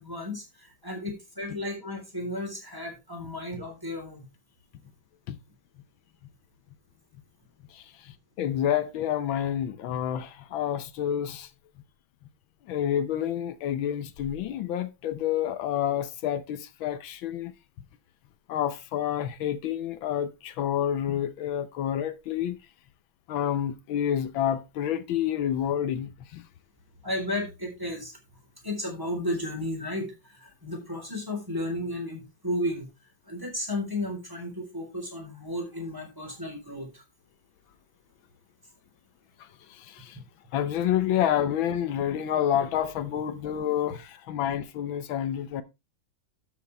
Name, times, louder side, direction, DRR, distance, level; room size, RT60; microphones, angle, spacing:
voice 1, 0.0-4.3 27.0-28.2 28.6-32.9 33.3-37.0, left 1 dB, 10° right, 4.0 m, -33 dB
voice 2, 7.7-11.5 12.6-17.5 18.5-22.6 23.3-26.4 39.4-40.2 40.5-45.6, left 10 dB, 85° left, 1.6 m, -29 dB
12.5 x 7.2 x 3.4 m
omnidirectional pair, 2.1 m